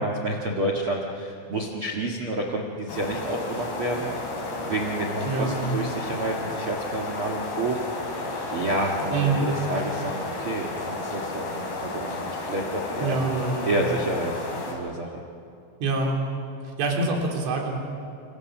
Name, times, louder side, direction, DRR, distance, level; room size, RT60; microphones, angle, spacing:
voice 1, 0.0-4.1 4.6-7.8 8.5-13.2 13.6-15.1, right 1 dB, 55° right, 1 dB, 1.4 m, -29 dB
sound 1, 2.9-14.7, left 2 dB, 55° left, 6.0 m, -32 dB
voice 2, 5.2-5.7 9.1-9.4 13.0-13.7 15.8-16.2 16.8-17.7, right 3 dB, 80° right, 0 dB, 5.9 m, -25 dB
29.5 x 27.0 x 6.2 m, 2.5 s
omnidirectional pair, 5.4 m